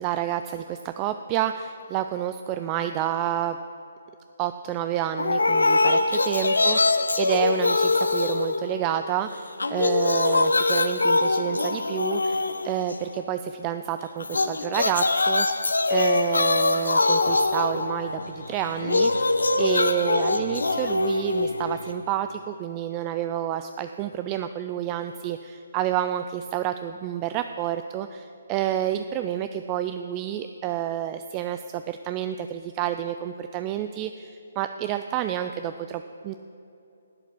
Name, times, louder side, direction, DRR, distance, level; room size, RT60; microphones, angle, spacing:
voice 1, 0.0-3.6 4.4-19.3 19.6-36.3, right 11 dB, 25° right, 9 dB, 0.3 m, -29 dB
sound 1, 5.2-9.2 9.5-13.2 14.2-22.2, left 3 dB, 85° left, 0.6 m, -23 dB
11.5 x 8.1 x 6.2 m, 2.8 s
figure-of-eight pair, 145°, 0 cm